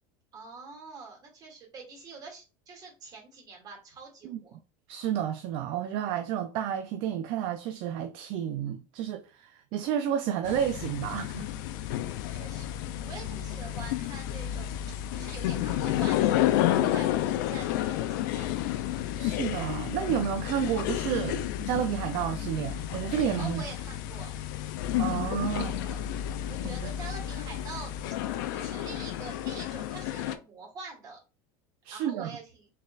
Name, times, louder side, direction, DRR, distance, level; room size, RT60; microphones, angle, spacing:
voice 1, 0.3-4.6 11.8-14.8 15.1-16.4 16.8-18.6 23.4-24.3 25.5-26.0 26.5-27.9 28.5-31.2 31.9-32.4, right 4 dB, 40° right, 2.2 m, -45 dB
voice 2, 4.9-11.5 19.2-23.6 25.0-25.7 31.8-32.4, right 10 dB, 60° right, 0.4 m, -31 dB
sound 1, 10.4-30.3, left 12 dB, 75° left, 0.5 m, -31 dB
4.2 x 3.9 x 2.4 m
supercardioid pair, 120°, 11 cm